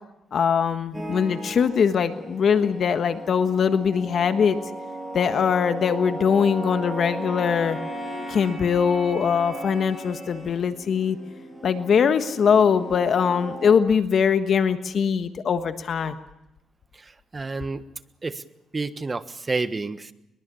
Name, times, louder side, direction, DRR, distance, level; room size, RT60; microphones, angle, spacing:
voice 1, 0.3-4.6 5.1-7.8 8.3-11.2 11.6-16.1, left 6 dB, 55° left, 9 dB, 1.4 m, -22 dB
sound 1, 0.9-13.7, right 1 dB, 10° right, 7.2 m, -36 dB
voice 2, 16.9-17.8 18.2-18.4 18.7-20.1, right 3 dB, 25° right, 12 dB, 1.3 m, -30 dB
22.5 x 22.5 x 7.1 m, 0.87 s
cardioid pair, 90°, 0 cm